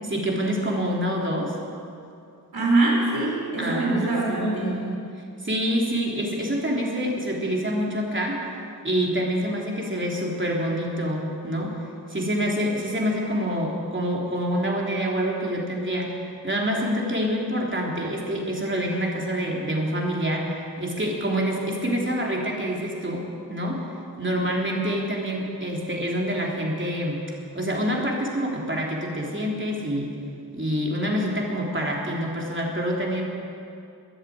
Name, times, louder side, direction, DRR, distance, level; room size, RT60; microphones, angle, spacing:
voice 1, 0.0-1.6 3.6-5.0 5.4-8.4 8.8-11.7 12.1-16.1 16.4-20.5 20.8-23.8 24.2-27.3 27.5-30.1 30.5-33.2, equal, 30° right, -2 dB, 3.4 m, -26 dB
voice 2, 2.5-4.7, right 2 dB, 70° right, -3 dB, 4.7 m, -23 dB
14.0 x 10.5 x 8.6 m, 2.5 s
cardioid pair, 45°, 39 cm